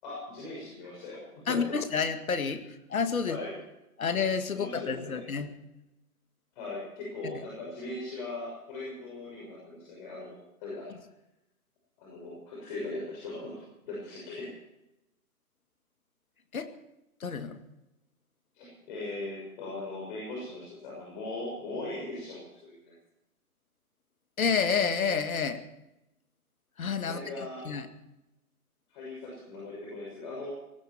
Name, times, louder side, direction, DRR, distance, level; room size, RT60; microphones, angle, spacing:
voice 1, 0.0-1.8 3.2-3.6 4.5-5.2 6.5-10.9 12.0-14.5 18.5-22.9 27.0-27.7 28.9-30.5, left 2 dB, 30° left, -4 dB, 6.4 m, -39 dB
voice 2, 1.5-2.6 2.9-3.4 4.0-5.5 16.5-16.7 17.2-17.6 24.4-25.6 26.8-27.2 27.6-27.9, left 6 dB, 65° left, 9 dB, 2.1 m, -29 dB
18.5 x 17.0 x 4.5 m, 0.91 s
figure-of-eight pair, 145°, 45 cm